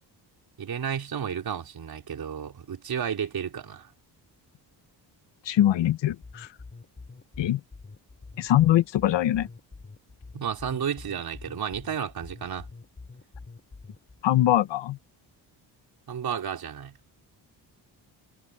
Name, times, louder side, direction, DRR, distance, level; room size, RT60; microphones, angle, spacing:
voice 1, 0.6-3.9 10.3-12.7 16.1-17.0, right 8 dB, 55° right, 4.0 m, -32 dB
voice 2, 5.5-6.5 7.4-7.6 8.4-9.5 14.2-15.0, left 13 dB, 75° left, 1.2 m, -22 dB
sound 1, 6.2-14.2, left 3 dB, 25° left, 5.9 m, -46 dB
cardioid pair, 105°, 44 cm